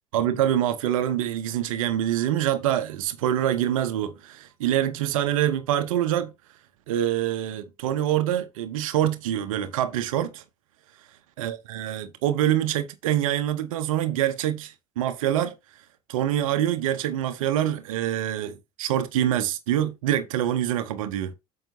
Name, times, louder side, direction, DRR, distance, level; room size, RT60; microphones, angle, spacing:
voice 1, 0.1-6.3 6.9-10.4 11.4-15.5 16.1-21.3, right 11 dB, 70° right, 0.9 m, -25 dB
8.9 x 6.4 x 2.8 m
figure-of-eight pair, 60°, 18 cm